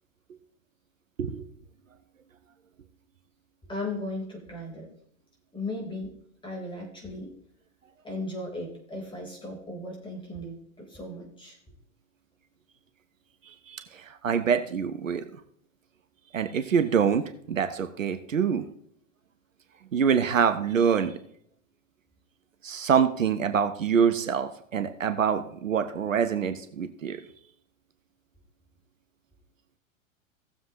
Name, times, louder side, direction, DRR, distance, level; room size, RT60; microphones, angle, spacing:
voice 1, 3.7-4.9 5.5-6.2 6.4-7.3 8.0-11.6, left 2 dB, 10° left, -1 dB, 3.8 m, -36 dB
voice 2, 13.5-15.3 16.3-18.7 19.9-21.2 22.6-27.2, right 7 dB, 75° right, 10 dB, 0.9 m, -25 dB
18.0 x 7.2 x 3.0 m, 0.68 s
figure-of-eight pair, 95°, 40 cm